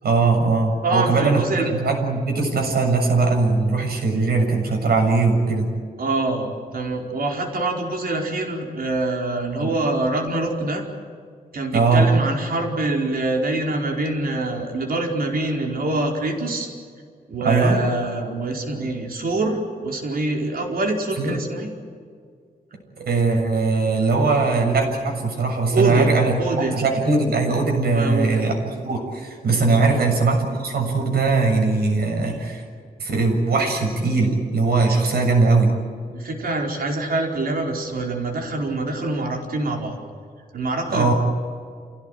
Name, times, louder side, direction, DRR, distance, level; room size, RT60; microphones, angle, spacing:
voice 1, 0.0-5.7 9.6-9.7 11.7-12.1 17.4-17.8 21.2-21.4 23.0-26.4 26.7-32.6 33.0-35.7 40.9-41.1, right 3 dB, 85° right, 2 dB, 7.1 m, -20 dB
voice 2, 0.8-1.7 6.0-10.8 11.5-16.7 17.3-21.7 24.1-24.5 25.7-26.9 27.9-28.5 29.8-30.1 36.1-40.0 40.5-41.1, right 2 dB, 70° right, 1 dB, 4.8 m, -25 dB
28.0 x 18.0 x 9.3 m, 2.1 s
wide cardioid pair, 140°, 16 cm